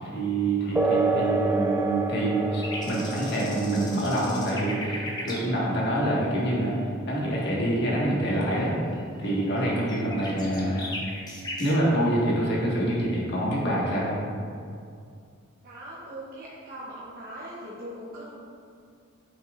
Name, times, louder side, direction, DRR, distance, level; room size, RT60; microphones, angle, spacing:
voice 1, 0.0-6.7 7.1-8.7 9.2-10.8 11.6-14.2, right 1 dB, 55° left, -5 dB, 1.5 m, -26 dB
sound 1, 0.8-8.8, right 2 dB, 10° right, 0.4 m, -31 dB
sound 2, 2.6-5.5 5.7-5.8 6.0-6.4 6.7-6.8 7.1-7.2 7.5-7.6 7.9-8.0 8.4-8.5 8.9-9.0 9.3-9.6 9.9-11.7, left 1 dB, 20° left, 0.8 m, -38 dB
voice 2, 15.6-18.4, right 1 dB, 45° right, -7 dB, 0.8 m, -40 dB
8.3 x 5.6 x 2.5 m, 2.3 s
head